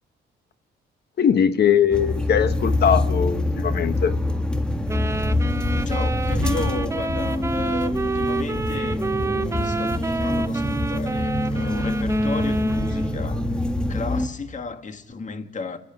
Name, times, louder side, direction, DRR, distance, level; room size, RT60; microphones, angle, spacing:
voice 1, 1.2-4.1, left 8 dB, 55° left, 1.4 m, -20 dB
sound 1, 1.9-14.3, left 1 dB, 5° left, 1.6 m, -25 dB
sound 2, 4.9-13.3, right 3 dB, 15° right, 0.6 m, -29 dB
voice 2, 5.7-13.6 13.9-15.8, left 4 dB, 40° left, 2.0 m, -34 dB
28.5 x 10.5 x 9.1 m
cardioid pair, 90°, 20 cm